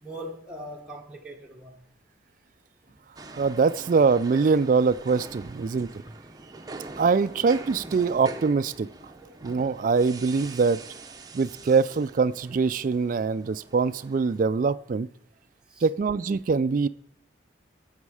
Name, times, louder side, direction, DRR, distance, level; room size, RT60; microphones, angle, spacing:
voice 1, 0.0-1.8 2.9-3.0 5.4-5.5 9.1-9.4 15.7-15.9, equal, 5° right, -1 dB, 1.1 m, -41 dB
sound 1, 3.2-14.4, right 3 dB, 20° right, 0.7 m, -44 dB
voice 2, 3.4-5.9 7.0-8.9 9.4-10.8 11.3-15.1 15.8-16.9, right 4 dB, 45° right, 13 dB, 0.3 m, -23 dB
17.0 x 7.3 x 4.8 m, 0.74 s
head